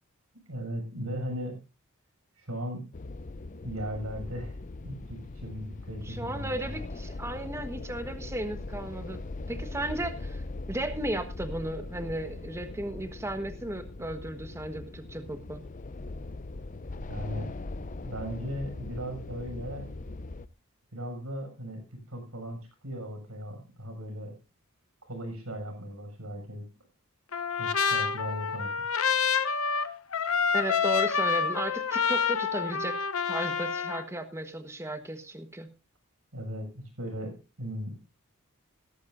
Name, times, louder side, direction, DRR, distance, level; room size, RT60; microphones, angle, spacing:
voice 1, 0.5-1.6 2.3-2.8 3.6-4.6 4.8-6.7 17.1-17.5 18.0-19.9 20.9-24.3 25.0-26.7 27.6-28.8 36.3-38.0, equal, 85° right, 4 dB, 6.7 m, -37 dB
sound 1, 2.9-20.5, left 2 dB, 35° left, 0.6 m, -40 dB
voice 2, 6.1-9.2 9.5-15.6 30.5-33.0 33.3-35.7, right 1 dB, 15° right, 8 dB, 1.3 m, -35 dB
Trumpet, 27.3-34.0, left 6 dB, 75° left, 0.9 m, -28 dB
17.0 x 14.0 x 2.6 m, 0.29 s
head